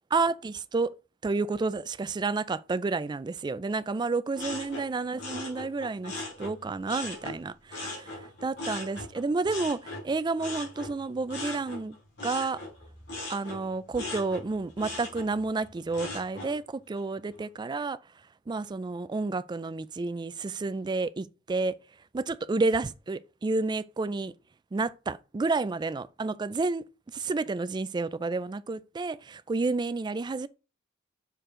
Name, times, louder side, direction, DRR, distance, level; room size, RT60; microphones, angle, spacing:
voice 1, 0.1-0.9 1.2-12.0 12.2-12.6 13.3-18.0 18.5-21.7 22.1-24.3 24.7-26.8 27.1-30.5, right 3 dB, 20° right, 0.3 m, -30 dB
sound 1, 4.3-7.4 7.7-16.5 17.0-17.4, left 2 dB, 60° left, 3.9 m, -39 dB
6.6 x 4.6 x 3.7 m
head